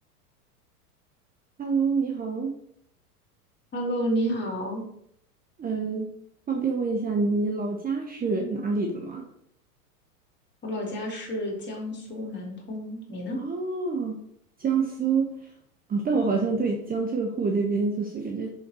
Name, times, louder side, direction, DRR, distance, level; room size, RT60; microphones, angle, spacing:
voice 1, 1.6-2.5 5.6-6.1 6.5-9.3 13.4-14.2 14.6-15.3 15.9-18.5, right 4 dB, 20° right, 2 dB, 1.1 m, -26 dB
voice 2, 3.7-4.8 10.6-13.4, equal, 25° left, -1 dB, 3.2 m, -30 dB
6.9 x 6.3 x 4.4 m, 0.69 s
hypercardioid pair, 100°, 46 cm